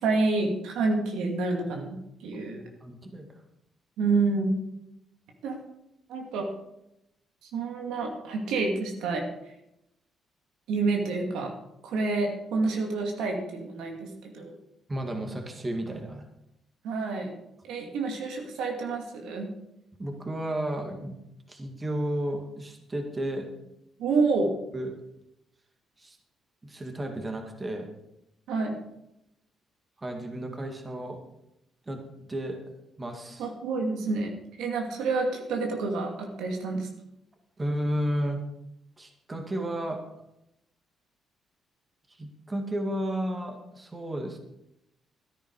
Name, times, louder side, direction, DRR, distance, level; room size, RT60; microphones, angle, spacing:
voice 1, 0.0-2.6 4.0-4.6 5.4-5.6 6.1-6.5 7.5-9.2 10.7-11.5 11.8-14.5 16.8-17.3 17.7-19.5 24.0-24.5 28.5-28.7 33.4-34.3 34.6-36.9, right 3 dB, 90° right, 2 dB, 2.4 m, -28 dB
voice 2, 2.8-3.4 14.9-16.3 20.0-21.2 21.5-23.5 24.7-25.0 26.0-26.2 26.6-27.9 30.0-31.2 31.9-32.0 32.3-32.6 33.0-33.5 37.6-38.4 39.0-40.0 42.1-44.4, right 1 dB, 25° right, 4 dB, 2.2 m, -32 dB
13.5 x 10.5 x 4.8 m, 0.84 s
cardioid pair, 90°, 0 cm